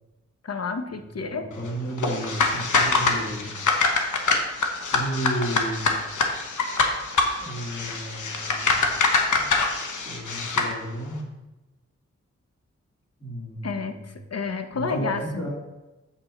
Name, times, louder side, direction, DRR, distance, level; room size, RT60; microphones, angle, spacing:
voice 1, 0.4-1.5 13.6-15.5, left 4 dB, 55° left, 7 dB, 1.0 m, -30 dB
voice 2, 1.3-3.5 4.8-5.9 7.4-8.8 9.4-9.5 10.0-11.3 13.2-13.9 14.7-15.5, right 1 dB, 30° left, -9 dB, 2.7 m, -32 dB
sound 1, 2.0-10.7, left 4 dB, 80° left, 1.1 m, -24 dB
7.6 x 5.7 x 4.3 m, 1.0 s
cardioid pair, 50°, 30 cm